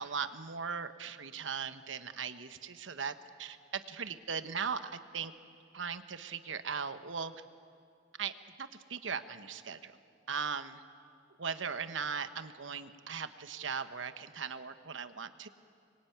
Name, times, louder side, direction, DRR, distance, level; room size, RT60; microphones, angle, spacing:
voice 1, 0.0-3.1 3.4-5.3 5.7-7.3 8.2-8.3 8.6-10.0 10.3-10.8 11.4-15.5, right 6 dB, 80° right, 10 dB, 1.1 m, -38 dB
26.5 x 22.5 x 9.3 m, 2.3 s
head